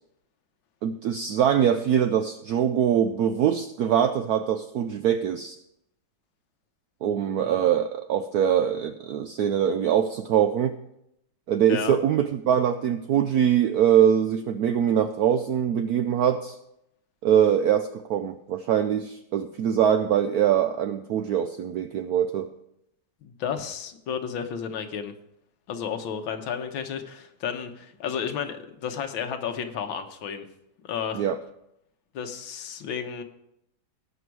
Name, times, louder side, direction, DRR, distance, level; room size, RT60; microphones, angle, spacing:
voice 1, 0.8-5.6 7.0-10.7 11.5-16.6 17.2-22.5 31.1-31.4, right 9 dB, 80° right, 9 dB, 0.8 m, -23 dB
voice 2, 23.2-25.1 25.7-30.5 30.8-31.3 32.1-33.2, left 7 dB, 75° left, 7 dB, 1.8 m, -32 dB
18.0 x 6.2 x 4.7 m, 0.80 s
omnidirectional pair, 2.2 m